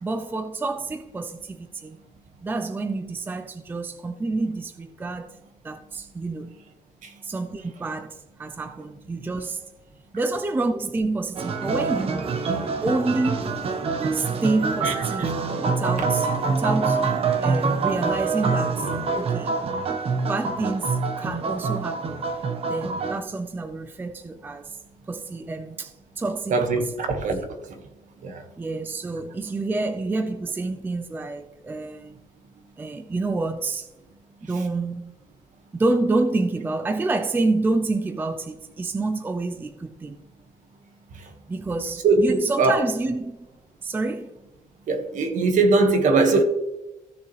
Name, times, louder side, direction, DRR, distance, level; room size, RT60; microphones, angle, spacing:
voice 1, 0.0-2.0 2.4-5.4 5.6-6.6 7.2-9.6 10.1-13.6 14.1-15.3 15.6-17.0 17.4-18.9 19.2-19.5 20.3-22.3 22.7-24.8 25.1-26.9 27.4-27.5 28.6-32.2 32.8-33.9 34.4-35.1 35.7-40.2 41.5-43.4 43.8-44.3, right 3 dB, 15° right, 0.5 m, -28 dB
sound 1, 11.4-23.2, right 4 dB, 45° right, 1.1 m, -25 dB
voice 2, 14.8-15.3 16.0-16.1 26.5-27.8 28.2-28.4 41.2-41.3 42.0-42.8 44.9-46.4, right 3 dB, 65° right, 1.7 m, -21 dB
15.5 x 6.9 x 3.3 m
wide cardioid pair, 180°, 14 cm